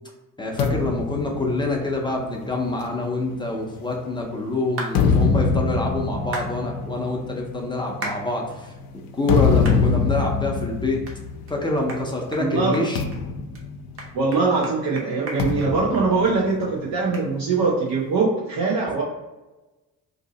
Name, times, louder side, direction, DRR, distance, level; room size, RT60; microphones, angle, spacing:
voice 1, 0.4-8.7 9.1-11.0 11.5-13.0, left 2 dB, 15° left, -1 dB, 0.4 m, -26 dB
Dumpster Kicking, 0.6-4.2 4.7-12.1 12.4-12.6 13.0-14.6 15.4-17.1, left 5 dB, 85° left, 0.5 m, -25 dB
Clapping Hands, 4.8-5.0 6.3-6.5 8.0-8.2 8.7-8.8 9.6-9.8 10.3-10.4 11.1-11.2 11.5-11.6 11.9-12.0 12.3-12.5 12.7-13.2 13.5-13.6 14.0-16.4 16.6-16.7 17.1-17.3, right 2 dB, 40° right, 0.7 m, -34 dB
voice 2, 12.4-12.8 14.1-19.0, right 4 dB, 80° right, -4 dB, 0.7 m, -22 dB
2.7 x 2.7 x 3.9 m, 1.1 s
cardioid pair, 175°, 34 cm